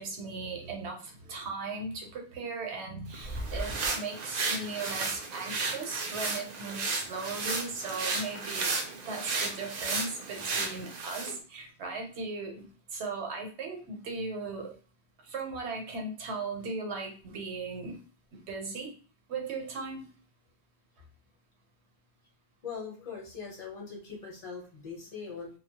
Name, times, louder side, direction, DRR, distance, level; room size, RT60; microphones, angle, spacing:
voice 1, 0.0-8.8 9.0-14.8 15.2-18.0 18.3-18.9 19.3-20.1, right 3 dB, 80° right, 2 dB, 1.0 m, -37 dB
sound 1, 3.1-11.4, right 3 dB, 55° right, 0.5 m, -34 dB
voice 2, 22.6-25.5, left 5 dB, 35° left, -2 dB, 0.8 m, -41 dB
2.2 x 2.0 x 2.8 m, 0.39 s
omnidirectional pair, 1.1 m